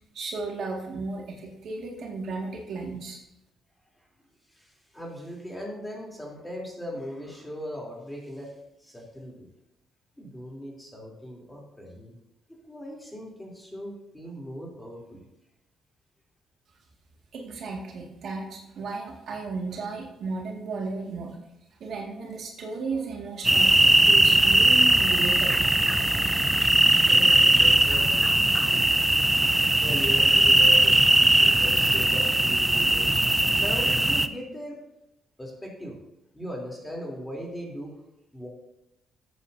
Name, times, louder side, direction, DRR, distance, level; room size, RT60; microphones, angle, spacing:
voice 1, 0.1-3.2 17.3-21.4 21.8-25.7, right 3 dB, 65° right, -1 dB, 2.1 m, -34 dB
voice 2, 4.5-8.5 8.8-9.5 10.2-12.2 12.5-15.2 27.0-28.9 29.8-33.1 33.5-34.8 35.4-36.0 36.3-37.9 38.3-38.5, equal, 10° left, -2 dB, 3.4 m, -38 dB
sound 1, 23.4-34.3, right 1 dB, 10° right, 0.6 m, -20 dB
14.0 x 8.4 x 2.8 m, 0.88 s
cardioid pair, 90°, 0 cm